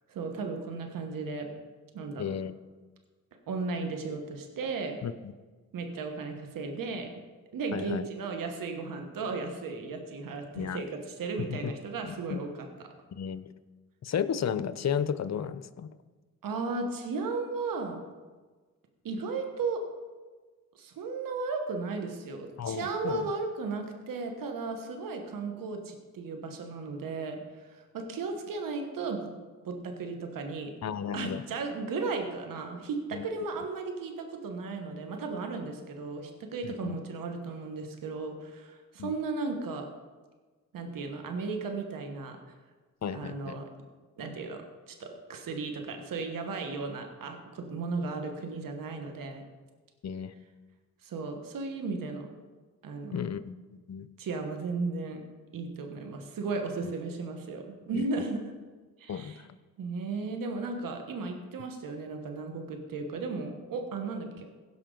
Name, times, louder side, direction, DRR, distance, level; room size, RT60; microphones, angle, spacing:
voice 1, 0.1-1.5 1.9-2.4 3.5-5.0 5.7-7.2 7.5-12.5 16.4-18.0 19.0-19.8 20.7-29.3 29.6-30.7 31.1-39.9 40.7-42.4 43.1-43.7 44.2-49.4 51.0-52.3 52.8-53.2 54.2-55.2 55.5-58.4 59.0-59.4 59.8-64.5, right 4 dB, 80° right, 4 dB, 1.3 m, -35 dB
voice 2, 2.2-2.5 5.0-5.3 7.7-8.0 10.5-10.8 11.4-11.7 12.1-12.4 13.1-13.4 14.0-15.9 22.6-23.3 30.8-31.4 33.1-33.3 36.6-37.0 39.0-39.2 43.0-43.6 50.0-50.3 53.1-53.5 53.9-54.1 56.8-56.9 57.9-58.0 59.1-59.4, left 7 dB, 55° left, 13 dB, 0.7 m, -33 dB
16.5 x 5.6 x 3.9 m, 1.4 s
supercardioid pair, 45°, 33 cm